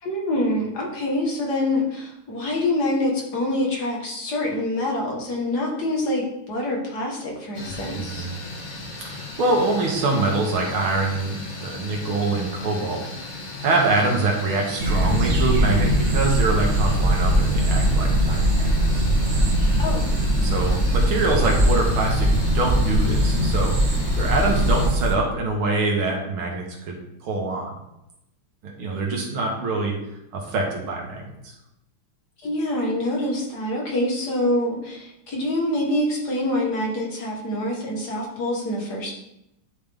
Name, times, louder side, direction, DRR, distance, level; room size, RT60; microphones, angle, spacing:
voice 1, 0.0-8.3 19.8-20.1 32.4-39.1, left 1 dB, 55° left, -2 dB, 1.8 m, -25 dB
sound 1, 7.5-24.9, left 2 dB, 70° left, 0.4 m, -37 dB
voice 2, 7.9-8.4 9.0-13.2 13.6-19.0 20.4-23.7 24.2-27.7 28.6-29.9 30.3-31.3, right 3 dB, 85° right, 0 dB, 2.2 m, -25 dB
sound 2, 14.8-25.1, right 1 dB, 60° right, 0.7 m, -20 dB
10.5 x 3.6 x 3.5 m, 0.85 s
omnidirectional pair, 2.3 m